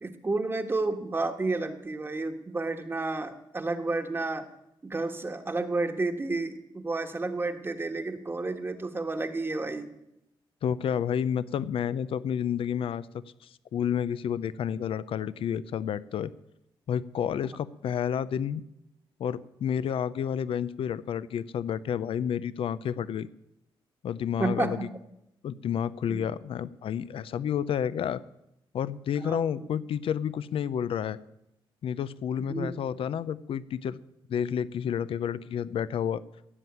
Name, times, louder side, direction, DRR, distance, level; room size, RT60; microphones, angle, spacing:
voice 1, 0.0-4.5 4.8-9.9 24.4-24.9 26.1-26.2 29.2-29.7 32.4-32.8, right 3 dB, 25° right, 6 dB, 1.3 m, -31 dB
voice 2, 10.6-13.1 13.4-16.3 16.9-18.6 19.2-23.3 24.0-24.9 25.4-28.2 28.7-31.2 31.8-34.0 34.3-36.2, left 8 dB, 75° left, 17 dB, 0.6 m, -30 dB
16.0 x 7.9 x 9.3 m, 0.84 s
cardioid pair, 115°, 9 cm